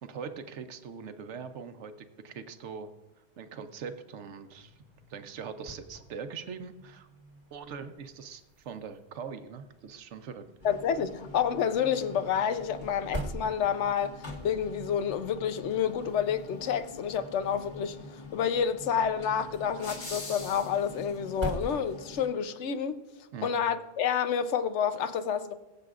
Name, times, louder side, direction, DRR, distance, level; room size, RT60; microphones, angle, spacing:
voice 1, 0.0-2.9 3.4-4.7 5.1-7.1 7.5-10.5 23.3-23.5, right 6 dB, 85° right, 1.1 m, -42 dB
sound 1, 4.4-22.5, right 1 dB, 25° right, 1.0 m, -46 dB
voice 2, 10.6-18.0 18.3-23.0 23.4-25.5, left 8 dB, 85° left, 1.0 m, -29 dB
sound 2, 10.6-22.3, left 3 dB, 45° left, 1.6 m, -45 dB
21.5 x 7.8 x 2.4 m
omnidirectional pair, 1.2 m